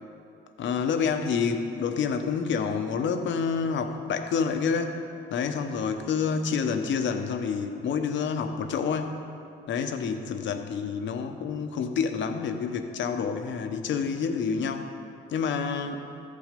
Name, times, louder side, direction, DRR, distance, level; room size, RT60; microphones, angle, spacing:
voice 1, 0.6-5.0 5.3-9.2 9.7-14.9 15.3-16.1, left 6 dB, 70° left, 7 dB, 1.0 m, -28 dB
14.0 x 8.5 x 5.3 m, 2.6 s
cardioid pair, 90°, 20 cm